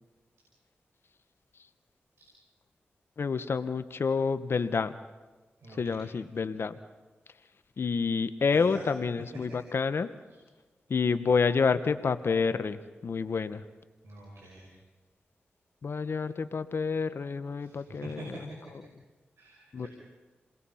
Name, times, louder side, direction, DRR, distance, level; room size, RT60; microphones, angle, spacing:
voice 1, 3.2-4.9 5.7-6.8 7.8-10.1 10.9-13.6 15.8-18.5 19.7-19.9, left 5 dB, 65° left, 11 dB, 1.1 m, -28 dB
voice 2, 5.6-6.0 8.5-8.8 14.0-14.7 17.6-18.4 19.4-19.9, right 2 dB, 80° right, -2 dB, 5.9 m, -45 dB
29.0 x 20.5 x 5.7 m, 1.3 s
cardioid pair, 45°, 4 cm